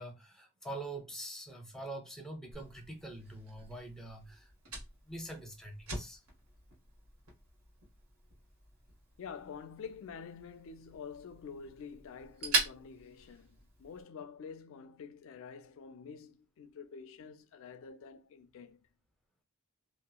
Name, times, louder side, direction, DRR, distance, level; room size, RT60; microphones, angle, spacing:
voice 1, 0.0-4.7 5.1-6.2, right 1 dB, ahead, 0.6 m, -45 dB
Fire, 2.5-14.0, right 3 dB, 80° right, 1.2 m, -42 dB
voice 2, 9.2-18.9, left 6 dB, 65° left, 0.3 m, -48 dB
2.8 x 2.3 x 2.2 m
head